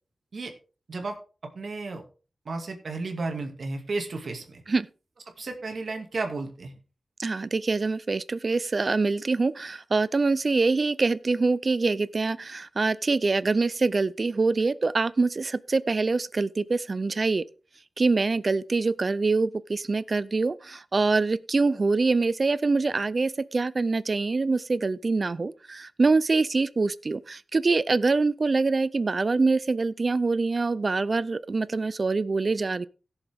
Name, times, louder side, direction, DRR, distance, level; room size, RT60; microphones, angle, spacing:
voice 1, 1.5-2.0 2.5-4.6 5.4-6.7, right 3 dB, 65° right, 2.2 m, -33 dB
voice 2, 7.2-17.5 18.0-32.9, right 3 dB, 45° right, 0.5 m, -25 dB
17.0 x 7.1 x 3.5 m
wide cardioid pair, 80°, 0 cm